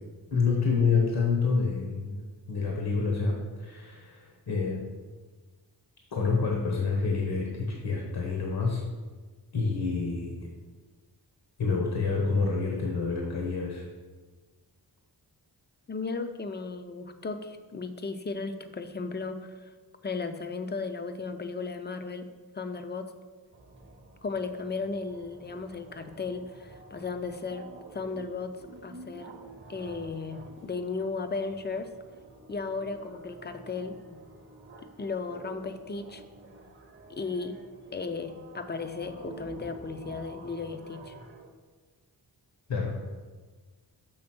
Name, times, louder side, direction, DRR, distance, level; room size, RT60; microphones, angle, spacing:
voice 1, 0.3-4.8 6.1-8.8 9.5-10.5 11.6-13.8 42.7-42.9, left 4 dB, 65° left, 0 dB, 1.1 m, -28 dB
voice 2, 15.9-19.7 20.0-22.3 22.5-23.1 24.2-28.5 28.8-29.3 29.7-31.9 32.5-34.2 35.0-36.2 37.1-37.6 37.9-41.1, left 4 dB, 25° left, 8 dB, 0.5 m, -35 dB
sound 1, 23.5-41.5, right 2 dB, 30° right, 0.8 m, -49 dB
6.3 x 3.5 x 6.0 m, 1.4 s
cardioid pair, 75°, 42 cm